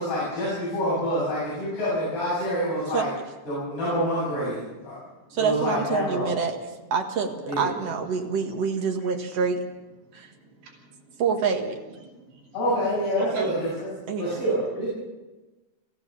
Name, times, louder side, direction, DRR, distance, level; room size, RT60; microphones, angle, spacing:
voice 1, 0.0-3.1 3.5-5.0 5.3-6.3 7.5-7.7 12.5-13.9 14.2-14.9, equal, 70° left, -9 dB, 9.9 m, -27 dB
voice 2, 5.3-6.6 6.9-9.6 10.1-10.3 11.2-11.8 14.1-14.4, right 5 dB, 50° right, 3 dB, 2.2 m, -26 dB
voice 3, 10.3-11.1 12.0-12.5 13.2-13.5, right 6 dB, 90° right, 0 dB, 7.3 m, -37 dB
24.0 x 15.5 x 7.0 m, 1.1 s
omnidirectional pair, 4.8 m